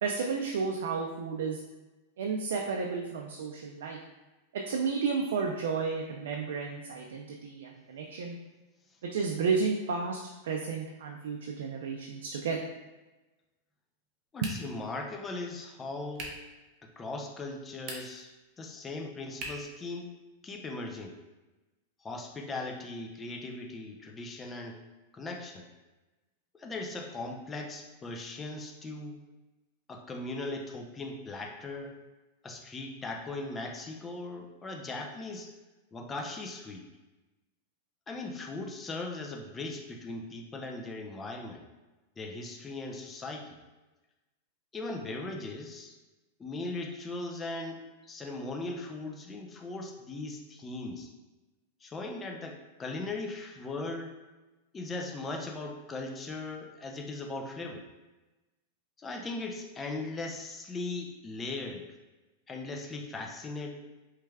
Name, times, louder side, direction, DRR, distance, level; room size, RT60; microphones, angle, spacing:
voice 1, 0.0-1.6 2.2-4.0 4.5-8.4 9.0-12.6, right 5 dB, 80° right, 1 dB, 0.4 m, -32 dB
voice 2, 14.3-16.3 16.8-18.3 18.6-20.1 20.4-21.2 22.0-24.8 25.1-25.7 26.5-29.2 29.9-31.9 32.4-35.5 35.9-36.9 38.1-41.6 42.2-43.6 44.7-45.9 46.4-51.1 51.8-54.1 54.7-57.8 59.0-61.8 62.5-63.7, left 2 dB, 15° left, 2 dB, 0.4 m, -39 dB
sound 1, 14.4-14.9 16.1-16.5 17.7-18.3 19.4-19.8, right 2 dB, 40° right, 0.7 m, -41 dB
4.6 x 3.2 x 2.3 m, 1.1 s
supercardioid pair, 150°, 0 cm